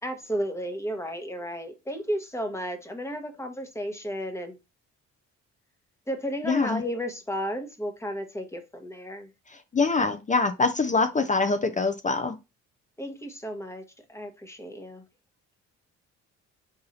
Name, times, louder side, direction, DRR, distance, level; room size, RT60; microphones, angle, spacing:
voice 1, 0.0-4.6 6.1-9.3 13.0-13.8 14.1-15.0, equal, 10° left, 1.0 m, -33 dB
voice 2, 6.4-6.8 9.5-12.4, left 4 dB, 25° left, 0.5 m, -24 dB
4.0 x 2.6 x 4.2 m
cardioid pair, 90°, 30 cm